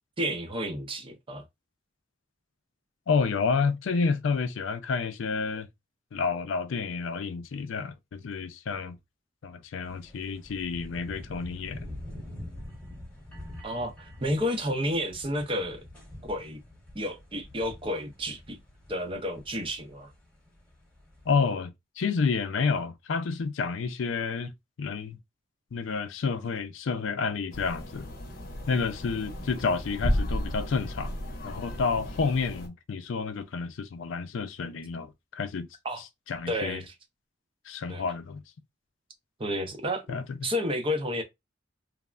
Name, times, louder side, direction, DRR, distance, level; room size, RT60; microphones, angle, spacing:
voice 1, 0.2-1.4 13.6-15.8 16.2-16.6 16.9-18.6 18.9-20.1 35.8-36.0 36.5-36.9 37.9-38.0 39.4-40.1 40.4-41.2, equal, 30° right, 0.6 m, -31 dB
voice 2, 3.1-5.7 6.1-9.0 9.4-11.9 21.3-24.5 24.8-25.2 25.7-28.1 28.7-31.2 31.4-35.7 36.3-36.8 37.7-38.4 40.1-40.4, left 5 dB, 80° left, 0.4 m, -29 dB
sound 1, 9.8-21.3, left 1 dB, 10° left, 1.1 m, -46 dB
sound 2, 27.5-32.7, equal, 50° left, 0.8 m, -33 dB
3.2 x 2.0 x 2.4 m
head